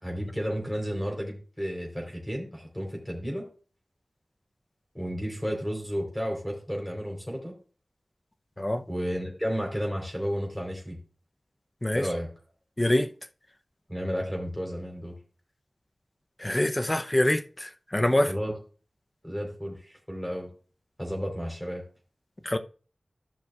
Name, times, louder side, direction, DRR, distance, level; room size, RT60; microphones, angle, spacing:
voice 1, 0.0-3.4 4.9-7.5 8.9-11.0 11.9-12.3 13.9-15.1 18.3-18.6 19.2-20.5 21.0-21.8, equal, 5° left, 3.8 m, -32 dB
voice 2, 12.8-13.1 16.4-18.3 22.4-22.6, left 1 dB, 25° left, 0.7 m, -25 dB
14.5 x 6.1 x 2.4 m
wide cardioid pair, 50°, 0 cm